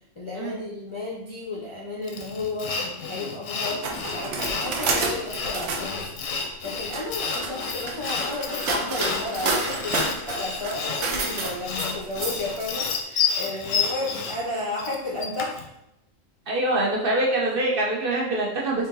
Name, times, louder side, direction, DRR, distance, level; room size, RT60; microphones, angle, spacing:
voice 1, 0.2-6.1 6.3-15.6, left 2 dB, 40° left, -6 dB, 0.4 m, -33 dB
Sawing, 2.1-15.7, left 5 dB, 90° left, 1.0 m, -30 dB
sound 1, 3.8-5.9 6.7-12.8, right 3 dB, 75° right, 1.0 m, -29 dB
voice 2, 16.5-18.9, right 1 dB, 55° right, -2 dB, 0.7 m, -24 dB
3.8 x 2.5 x 3.8 m, 0.85 s
omnidirectional pair, 1.3 m